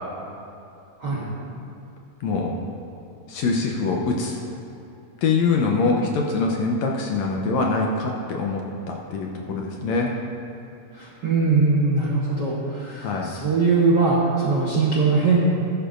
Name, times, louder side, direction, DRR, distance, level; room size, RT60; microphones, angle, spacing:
voice 1, 1.0-1.3 10.9-15.4, right 4 dB, 60° right, -6 dB, 1.1 m, -21 dB
voice 2, 2.2-2.5 3.3-4.4 5.2-10.1 13.0-13.3, left 4 dB, 75° left, 0 dB, 1.8 m, -24 dB
14.5 x 12.0 x 2.6 m, 2.7 s
omnidirectional pair, 3.7 m